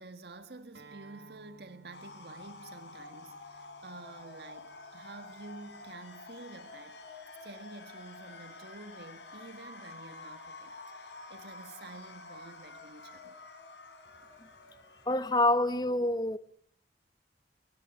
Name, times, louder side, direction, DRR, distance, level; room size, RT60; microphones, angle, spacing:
voice 1, 0.0-13.4, right 3 dB, 70° right, 1.6 m, -50 dB
Acoustic guitar, 0.7-5.9, right 3 dB, 85° right, 5.5 m, -59 dB
sound 1, 1.9-15.5, left 3 dB, 90° left, 4.2 m, -49 dB
voice 2, 15.1-16.4, left 1 dB, 25° left, 0.9 m, -26 dB
22.5 x 19.0 x 8.9 m
head